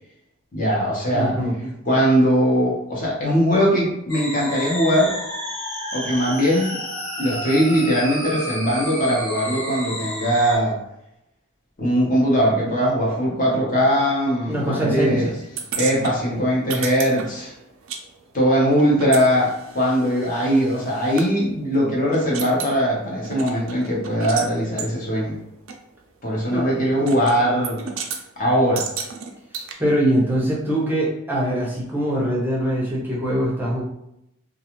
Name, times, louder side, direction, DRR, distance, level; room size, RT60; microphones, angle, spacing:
voice 1, 0.5-1.3 1.6-5.1 5.9-6.7 7.2-10.8 11.8-15.3 15.8-17.5 18.3-25.4 26.2-27.8 28.4-28.8, equal, 40° left, -3 dB, 0.8 m, -20 dB
voice 2, 1.1-1.6 14.5-15.3 26.5-26.7 29.8-33.8, right 1 dB, 10° right, -4 dB, 0.6 m, -22 dB
sound 1, 4.1-10.6, equal, 85° left, 1.0 m, -31 dB
sound 2, 15.6-18.0 18.3-21.3 21.7-21.8 22.1-22.8 23.2-24.5 24.8-24.9 25.7-25.8 27.1-27.4 27.6-28.2 28.8-29.7, right 6 dB, 70° right, 0.4 m, -32 dB
2.4 x 2.3 x 2.9 m, 0.82 s
head